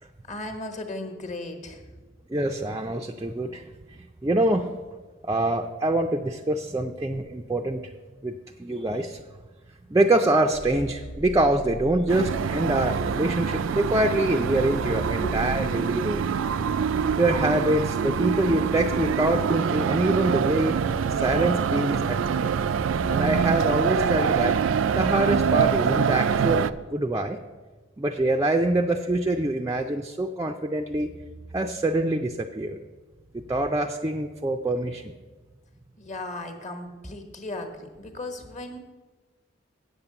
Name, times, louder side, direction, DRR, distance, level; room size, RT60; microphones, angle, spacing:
voice 1, 0.2-1.9 15.2-15.4 36.0-38.8, left 2 dB, 40° left, 6 dB, 1.2 m, -36 dB
voice 2, 2.3-3.7 4.2-4.7 5.2-7.8 8.2-9.2 9.9-16.4 17.2-20.8 21.1-22.5 23.1-27.4 28.0-31.1 31.5-32.8 33.3-35.1, right 1 dB, 15° right, 3 dB, 0.4 m, -25 dB
sound 1, 10.5-26.0, right 1 dB, 80° left, 0.8 m, -40 dB
sound 2, 12.1-26.7, right 7 dB, 85° right, 0.4 m, -25 dB
8.3 x 7.2 x 6.9 m, 1.3 s
head